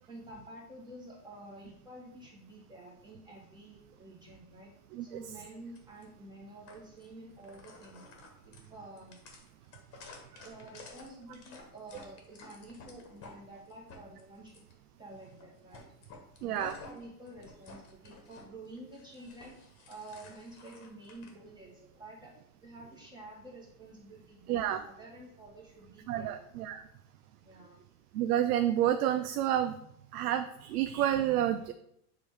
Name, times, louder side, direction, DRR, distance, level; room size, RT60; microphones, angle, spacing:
voice 1, 0.1-4.7 5.0-8.0 8.4-9.2 10.4-14.6 15.0-15.9 16.4-22.3 22.6-26.4 27.4-27.8, right 1 dB, 10° right, -3 dB, 1.5 m, -50 dB
sound 1, 5.7-6.0 6.7-7.1 7.4-13.4 13.7-14.7 15.2-15.4 15.7-18.4 18.8-21.3, left 3 dB, 30° left, 1.4 m, -52 dB
voice 2, 16.4-16.7 24.5-24.8 26.1-26.8 28.1-29.7 30.1-31.7, right 11 dB, 75° right, 9 dB, 0.6 m, -29 dB
7.5 x 3.5 x 4.7 m, 0.75 s
supercardioid pair, 145°, 47 cm